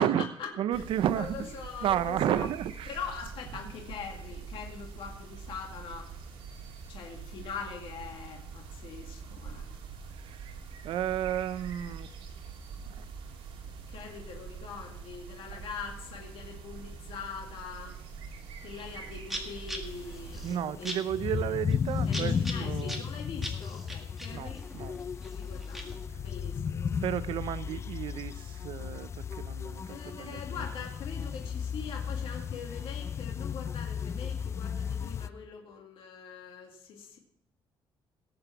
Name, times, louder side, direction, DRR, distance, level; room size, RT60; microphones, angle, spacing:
voice 1, 0.0-0.8 1.2-2.5 2.9-6.1 6.9-9.8 13.9-18.0 18.6-21.6 22.0-24.7 25.2-26.9 29.6-37.2, left 6 dB, 65° left, 1 dB, 2.1 m, -43 dB
voice 2, 0.6-1.5 1.8-2.9 10.1-10.6 10.8-12.1 12.9-13.1 20.4-23.1 24.3-25.0 27.0-30.4, right 10 dB, 65° right, 15 dB, 0.5 m, -32 dB
sound 1, 0.7-20.6, right 5 dB, 80° right, 2.6 m, -44 dB
sound 2, 18.8-18.9 19.2-26.0, equal, ahead, 1.8 m, -42 dB
sound 3, 19.9-35.3, left 7 dB, 30° left, 0.4 m, -35 dB
18.0 x 7.0 x 5.8 m, 0.78 s
cardioid pair, 170°, 10 cm